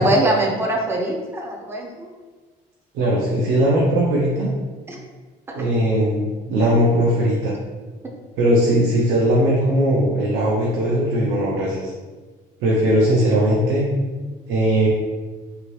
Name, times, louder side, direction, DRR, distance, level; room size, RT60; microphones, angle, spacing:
voice 1, 0.0-2.1 4.9-5.0, right 1 dB, 15° right, 0 dB, 0.5 m, -22 dB
voice 2, 2.9-4.5 5.5-7.5 8.4-11.9 12.6-13.9 14.5-14.9, right 1 dB, 85° right, -4 dB, 0.6 m, -19 dB
2.9 x 2.6 x 3.1 m, 1.3 s
cardioid pair, 110°, 17 cm